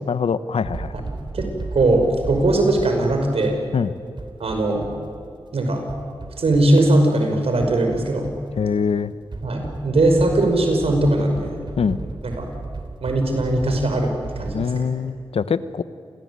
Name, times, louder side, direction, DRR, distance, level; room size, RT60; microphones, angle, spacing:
voice 1, 0.0-0.9 3.7-3.9 8.6-9.1 11.8-12.0 14.5-15.8, left 6 dB, 80° left, 14 dB, 1.0 m, -23 dB
sound 1, 0.6-14.7, right 3 dB, 50° right, 3.5 m, -35 dB
voice 2, 1.3-3.6 4.4-4.9 5.5-5.8 6.4-8.3 9.4-11.6 12.2-12.5 13.0-14.9, right 2 dB, 80° right, 4 dB, 5.6 m, -20 dB
27.5 x 19.0 x 9.6 m, 2.5 s
cardioid pair, 55°, 10 cm